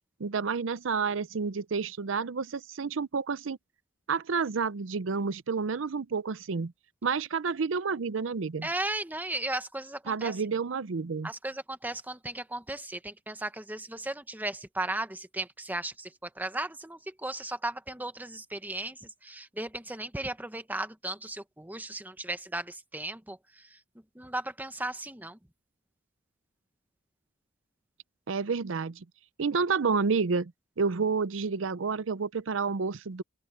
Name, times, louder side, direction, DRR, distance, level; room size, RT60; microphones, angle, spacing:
voice 1, 0.2-3.6 4.1-6.7 7.0-8.7 10.1-11.3 28.3-29.0 29.4-30.5 30.8-33.2, right 5 dB, 85° right, 0.6 m, -30 dB
voice 2, 8.6-10.3 11.2-23.8 24.1-25.4, right 2 dB, 10° right, 1.3 m, -36 dB
open air
head